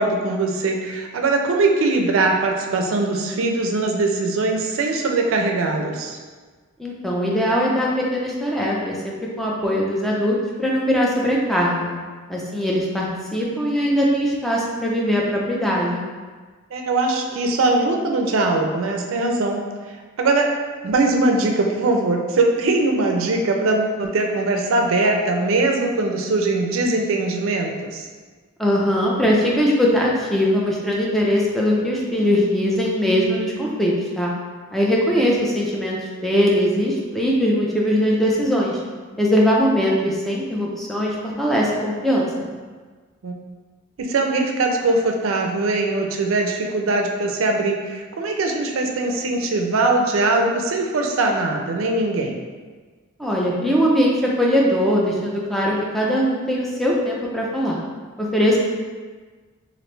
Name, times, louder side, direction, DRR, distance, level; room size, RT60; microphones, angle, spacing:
voice 1, 0.0-6.2 16.7-19.6 20.2-20.5 20.8-28.1 43.2-43.3 44.0-52.3, right 2 dB, 70° right, 2 dB, 0.4 m, -21 dB
voice 2, 6.8-11.9 12.3-16.0 28.6-34.3 34.7-38.8 39.2-42.3 53.2-57.8 58.2-58.6, equal, ahead, -4 dB, 0.4 m, -21 dB
3.0 x 2.5 x 3.2 m, 1.4 s
head